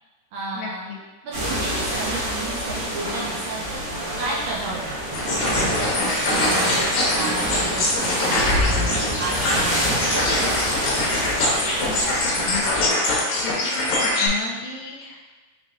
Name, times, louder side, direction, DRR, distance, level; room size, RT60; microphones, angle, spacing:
voice 1, 0.3-0.9 1.2-3.8 4.2-5.2 5.5-6.8 7.1-9.8 10.1-10.8, right 2 dB, 75° right, -5 dB, 1.9 m, -32 dB
sound 1, 1.3-12.9, equal, 55° right, 2.4 m, -26 dB
sound 2, 5.1-14.3, left 2 dB, 70° left, 2.0 m, -23 dB
voice 2, 11.9-12.9 13.4-15.3, left 5 dB, 85° left, 0 dB, 2.3 m, -34 dB
5.5 x 4.0 x 2.4 m, 1.2 s
omnidirectional pair, 4.0 m